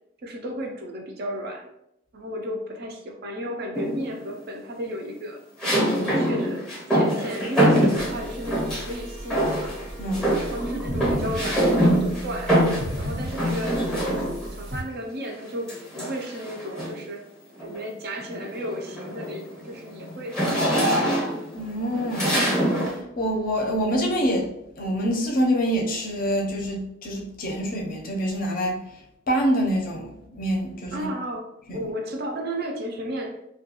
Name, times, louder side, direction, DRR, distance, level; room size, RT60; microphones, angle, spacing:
voice 1, 0.2-1.7 2.1-5.4 5.9-6.6 6.9-9.8 10.4-12.6 13.0-14.0 14.5-17.2 17.6-21.1 30.9-33.4, equal, 50° right, 0.4 m, -34 dB
sound 1, 3.7-4.3 5.6-8.9 9.3-9.9 10.1-14.6 15.7-17.1 17.6-17.8 18.2-23.0, equal, ahead, 0.6 m, -24 dB
sound 2, 8.0-14.8, equal, 85° right, 1.0 m, -35 dB
voice 2, 21.5-22.4 23.2-24.5 24.8-28.8 29.3-31.1 31.8-31.9, equal, 45° left, 0.5 m, -25 dB
2.3 x 2.2 x 2.8 m
head